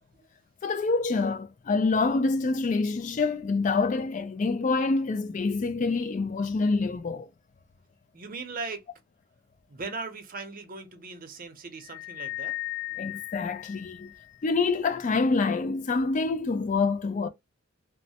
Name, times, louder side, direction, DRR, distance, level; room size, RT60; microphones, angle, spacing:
voice 1, 0.6-7.3 13.0-14.1 14.4-17.3, left 3 dB, 40° left, 0.3 m, -26 dB
voice 2, 8.1-8.8 9.7-12.6, right 4 dB, 45° right, 0.7 m, -38 dB
sound 1, 11.8-14.5, left 18 dB, 90° left, 0.5 m, -37 dB
3.1 x 2.1 x 2.7 m
head